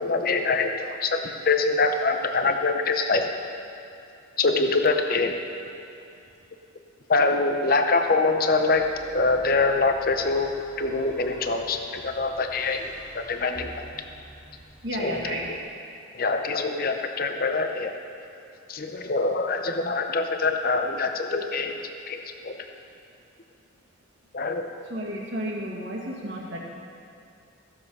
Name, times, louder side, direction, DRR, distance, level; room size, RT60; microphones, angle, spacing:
voice 1, 0.0-3.3 4.4-5.4 7.1-13.9 14.9-15.6 16.1-17.9 18.7-22.7 24.3-24.8, left 3 dB, 45° left, 6 dB, 0.7 m, -25 dB
sound 1, 8.7-15.6, right 1 dB, 90° right, 3.1 m, -48 dB
voice 2, 14.8-15.5 24.9-26.6, right 1 dB, 55° right, -4 dB, 2.0 m, -32 dB
15.5 x 7.3 x 5.6 m, 2.6 s
head